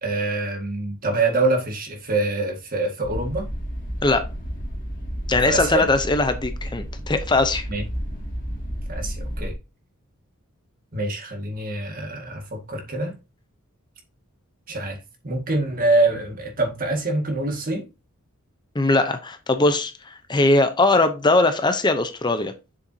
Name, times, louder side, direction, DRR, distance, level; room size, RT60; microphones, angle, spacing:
voice 1, 0.0-3.5 5.3-5.9 7.7-7.8 8.9-9.6 10.9-13.2 14.7-15.0 15.2-17.9, right 2 dB, 40° right, 1.9 m, -25 dB
sound 1, 3.0-9.5, equal, 40° left, 2.3 m, -31 dB
voice 2, 5.3-7.7 18.7-22.5, left 2 dB, 20° left, 0.7 m, -20 dB
7.8 x 6.8 x 2.8 m
head